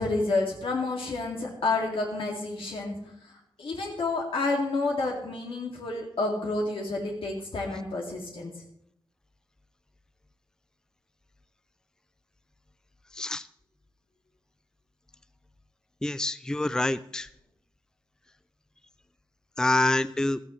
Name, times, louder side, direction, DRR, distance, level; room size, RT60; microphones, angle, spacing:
voice 1, 0.0-3.0 3.2-8.5, left 3 dB, 90° left, -1 dB, 2.3 m, -29 dB
voice 2, 13.1-13.5 16.0-17.3 19.6-20.4, left 2 dB, 10° left, 14 dB, 0.4 m, -26 dB
16.0 x 13.5 x 3.2 m, 0.71 s
wide cardioid pair, 145°, 9 cm